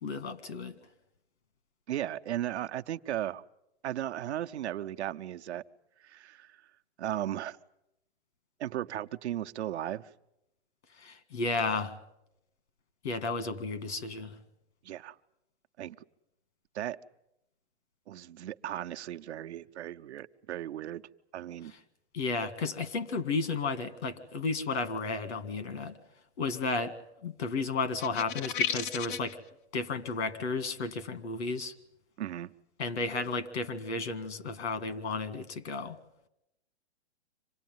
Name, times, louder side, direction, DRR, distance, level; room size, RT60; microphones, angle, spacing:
voice 1, 0.0-0.8 11.0-11.9 13.0-14.3 22.1-26.0 26.4-26.9 27.2-29.4 29.7-31.7 32.8-36.0, left 3 dB, 80° left, 12 dB, 2.0 m, -33 dB
voice 2, 1.9-3.4 3.8-5.6 6.0-6.6 7.0-7.6 8.6-10.1 14.8-15.2 15.8-16.0 16.7-17.0 18.1-21.0 21.3-21.7 32.2-32.5, right 12 dB, 80° right, 8 dB, 0.9 m, -36 dB
sound 1, 28.0-29.3, left 8 dB, 50° left, 0.8 m, -33 dB
26.0 x 18.0 x 9.3 m, 0.88 s
hypercardioid pair, 160°, 33 cm